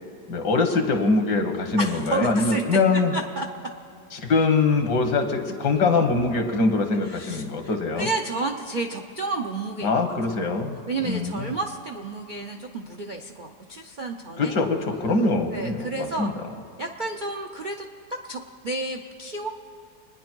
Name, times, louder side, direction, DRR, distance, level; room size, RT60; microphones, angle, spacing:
voice 1, 0.3-3.1 4.1-8.1 9.8-10.8 11.0-11.5 14.4-16.3, left 3 dB, 75° left, 5 dB, 2.0 m, -23 dB
voice 2, 1.8-2.8 3.1-3.5 7.1-7.7 8.0-10.1 10.9-14.8 15.5-16.3 16.8-19.5, right 2 dB, 55° right, 2 dB, 0.5 m, -31 dB
25.5 x 10.0 x 4.5 m, 2.5 s
omnidirectional pair, 1.8 m